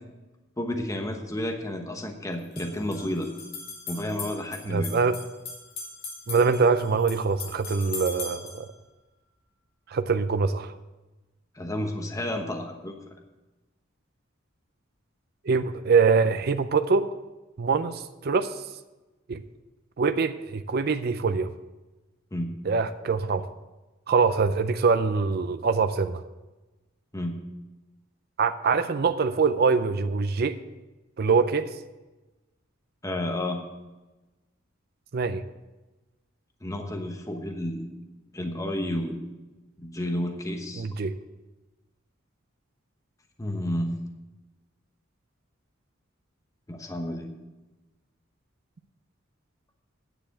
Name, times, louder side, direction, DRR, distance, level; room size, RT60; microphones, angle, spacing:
voice 1, 0.6-3.3 3.9-4.9 11.5-13.0 22.3-22.5 27.1-27.3 33.0-33.6 36.6-37.9 38.3-39.2 39.8-40.8 43.4-44.0 46.7-47.3, left 1 dB, 15° left, 3 dB, 1.0 m, -31 dB
sound 1, 0.8-0.9 2.4-8.6, left 4 dB, 55° left, 3.0 m, -40 dB
voice 2, 4.7-5.2 6.3-8.7 9.9-10.7 15.4-17.1 17.6-18.5 19.3-19.4 20.0-21.5 22.7-23.5 24.1-26.2 28.4-30.6 31.2-31.7 35.1-35.4 40.8-41.2, right 5 dB, 50° right, 10 dB, 0.5 m, -24 dB
10.0 x 6.9 x 7.8 m, 1.1 s
head